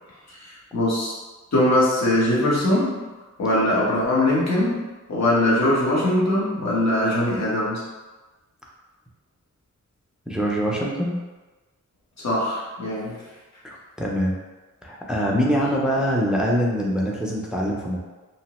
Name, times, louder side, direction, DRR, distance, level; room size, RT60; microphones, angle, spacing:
voice 1, 0.3-1.1 1.5-3.0 3.4-4.8 5.1-7.8 12.2-13.2, left 1 dB, 60° left, -6 dB, 0.9 m, -21 dB
voice 2, 10.3-11.2 13.6-14.3 14.8-18.0, equal, 5° right, -3 dB, 0.3 m, -24 dB
2.8 x 2.0 x 2.9 m, 1.2 s
wide cardioid pair, 145°, 31 cm